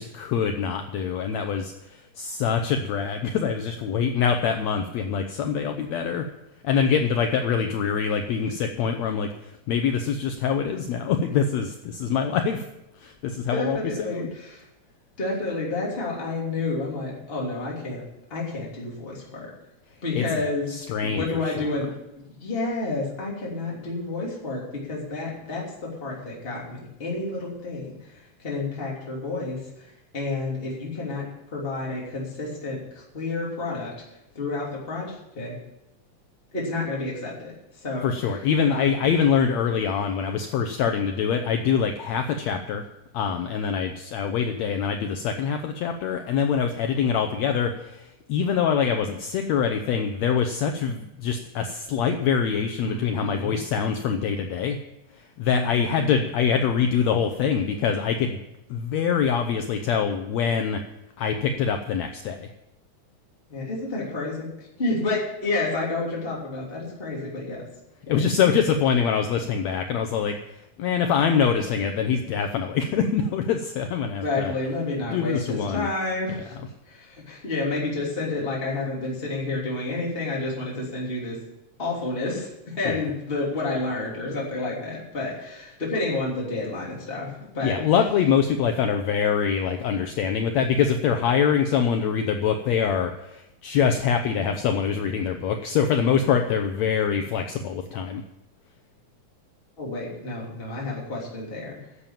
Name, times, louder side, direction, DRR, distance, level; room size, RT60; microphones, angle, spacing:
voice 1, 0.0-6.2 6.6-12.6 13.0-14.3 20.1-21.7 38.0-42.8 43.1-54.8 55.4-58.4 58.7-60.8 61.2-62.5 68.1-74.5 75.1-75.9 82.9-83.0 87.6-98.2, left 7 dB, 70° left, 5 dB, 1.8 m, -24 dB
voice 2, 13.5-14.6 15.2-18.0 18.3-19.5 20.0-21.9 22.2-33.9 34.3-35.5 36.5-37.5 37.8-38.4 38.7-38.9 52.8-53.5 55.5-56.2 63.5-67.6 68.1-68.2 74.2-81.3 81.8-87.8 99.8-101.8, left 2 dB, 20° left, -4 dB, 3.0 m, -30 dB
11.0 x 7.5 x 8.9 m, 0.89 s
omnidirectional pair, 3.5 m